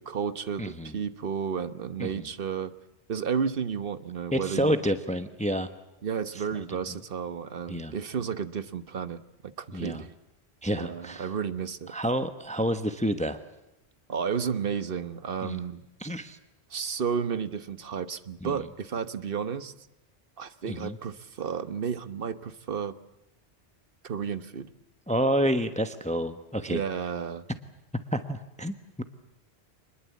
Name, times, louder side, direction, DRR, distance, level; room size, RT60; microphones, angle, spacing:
voice 1, 0.0-2.7 3.1-4.7 6.0-10.1 10.7-11.9 14.1-15.9 16.7-19.7 20.4-22.9 24.0-24.7 26.7-27.4, right 6 dB, 60° right, 13 dB, 1.3 m, -32 dB
voice 2, 0.6-0.9 2.0-2.3 4.3-5.7 6.7-6.8 7.7-7.9 9.7-10.0 10.6-11.3 11.9-13.4 15.4-15.6 16.0-16.4 18.4-18.6 20.7-21.0 25.1-26.8 28.1-29.0, equal, 5° left, 10 dB, 1.1 m, -29 dB
26.5 x 21.0 x 8.3 m, 0.91 s
omnidirectional pair, 1.1 m